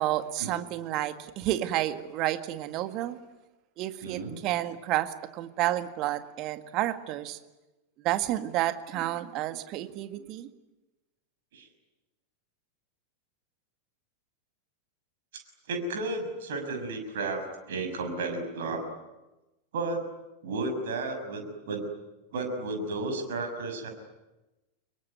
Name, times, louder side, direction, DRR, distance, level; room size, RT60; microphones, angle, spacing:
voice 1, 0.0-3.2 3.8-7.4 8.0-10.5, right 14 dB, 40° right, 10 dB, 1.9 m, -30 dB
voice 2, 4.0-4.4 11.5-11.7 15.7-18.8 19.7-20.1 20.4-21.9 22.3-23.9, right 2 dB, 60° right, 5 dB, 6.3 m, -33 dB
26.0 x 22.5 x 9.6 m, 1.0 s
figure-of-eight pair, 90°, 0 cm